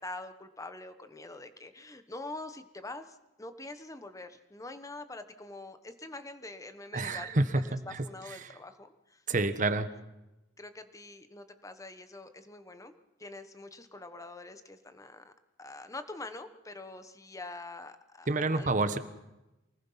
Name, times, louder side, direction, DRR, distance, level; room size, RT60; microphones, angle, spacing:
voice 1, 0.0-7.4 7.7-9.2 10.6-12.9 13.2-15.3 15.6-18.7, left 2 dB, 20° left, 9 dB, 1.2 m, -45 dB
voice 2, 6.9-8.5 9.3-9.9 18.3-19.0, right 2 dB, 45° right, 11 dB, 1.2 m, -29 dB
24.0 x 19.5 x 5.7 m, 0.99 s
head